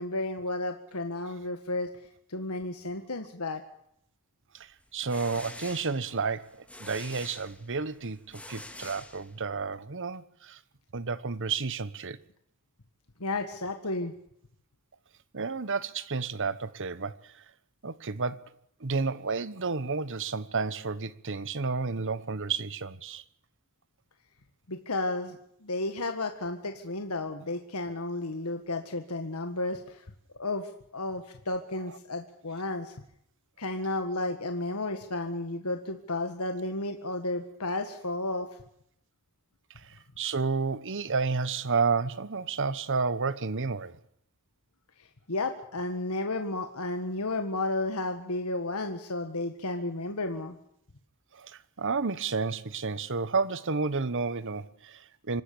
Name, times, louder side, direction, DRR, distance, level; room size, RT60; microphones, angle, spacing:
voice 1, 0.0-1.9 2.3-3.6 13.2-14.1 24.7-30.0 30.4-32.9 33.6-38.5 45.3-50.6, left 2 dB, 75° left, 1.8 m, -32 dB
voice 2, 4.5-10.6 10.9-12.2 15.3-17.4 17.8-18.5 18.8-23.2 39.8-44.0 51.3-55.4, right 4 dB, 60° right, 1.2 m, -31 dB
sound 1, 4.8-9.7, left 2 dB, 5° left, 2.4 m, -46 dB
26.0 x 13.0 x 8.5 m
head